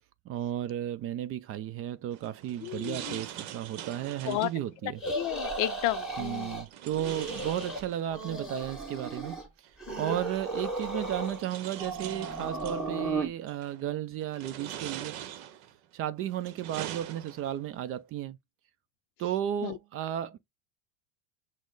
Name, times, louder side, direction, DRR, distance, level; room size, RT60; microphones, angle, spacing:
voice 1, 0.3-5.0 6.2-15.2 15.9-18.4 19.2-20.4, right 11 dB, 35° right, 0.4 m, -34 dB
sound 1, 2.1-4.6 6.7-8.3 9.7-9.8 10.8-12.8 13.5-13.9 14.3-15.8 16.3-17.7, right 11 dB, 60° right, 0.8 m, -43 dB
voice 2, 2.7-3.2 4.3-4.5 5.2-6.6 9.9-10.1 19.6-19.8, left 17 dB, 50° left, 0.5 m, -32 dB
sound 2, 5.0-6.6 6.9-7.8 8.1-9.5 9.8-11.4 11.8-13.3, right 2 dB, ahead, 1.8 m, -35 dB
6.1 x 2.1 x 3.8 m
hypercardioid pair, 100°, 40 cm